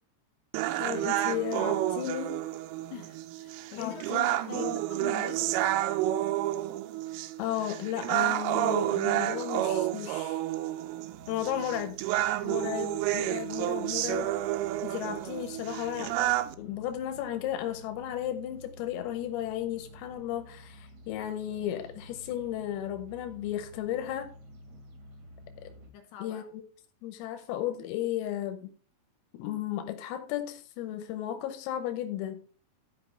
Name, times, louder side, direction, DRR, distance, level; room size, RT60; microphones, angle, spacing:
sound 1, 0.5-16.6, right 14 dB, 80° right, 3.1 m, -30 dB
voice 1, 0.8-2.4 3.8-4.8 7.4-10.4 11.3-12.0 12.4-14.3 14.8-16.3 16.6-24.3 25.6-25.7 26.2-26.4 27.0-28.7 29.3-32.4, left 11 dB, 90° left, 3.6 m, -34 dB
voice 2, 2.9-5.5 25.9-26.5, left 10 dB, 75° left, 2.8 m, -44 dB
sound 2, 11.1-25.9, equal, 50° right, 2.4 m, -51 dB
12.5 x 5.6 x 4.5 m
omnidirectional pair, 5.9 m